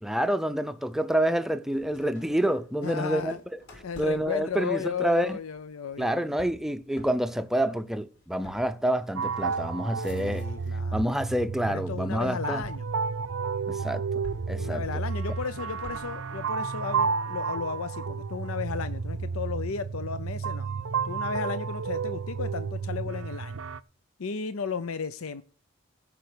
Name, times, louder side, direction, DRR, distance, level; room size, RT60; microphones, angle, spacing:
voice 1, 0.0-3.4 4.0-5.4 6.0-10.5 10.9-12.6 13.7-14.8, right 1 dB, ahead, 0.5 m, -28 dB
sound 1, 1.7-10.9 11.2-11.9 12.6-13.7 14.2-16.3, equal, 55° left, 3.7 m, -51 dB
voice 2, 2.8-3.4 3.8-6.4 10.1-11.1 11.7-12.8 14.6-20.7 21.0-23.6 24.2-25.4, left 5 dB, 85° left, 0.6 m, -34 dB
sound 2, 9.2-23.8, right 5 dB, 70° right, 0.5 m, -32 dB
14.5 x 5.8 x 6.7 m
head